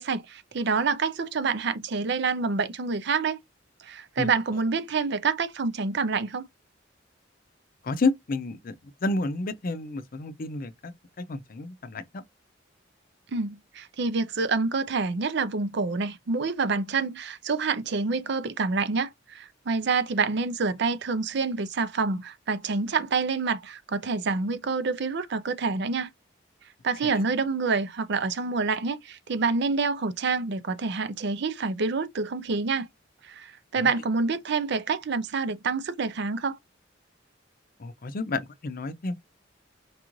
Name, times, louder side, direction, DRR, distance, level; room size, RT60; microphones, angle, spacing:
voice 1, 0.0-3.4 3.8-6.5 13.3-26.1 26.8-32.9 33.2-36.6, right 4 dB, 65° right, 0.5 m, -27 dB
voice 2, 7.8-8.8 9.0-12.2 33.8-33.9 37.8-39.1, left 3 dB, 50° left, 0.5 m, -30 dB
4.6 x 2.5 x 3.0 m
head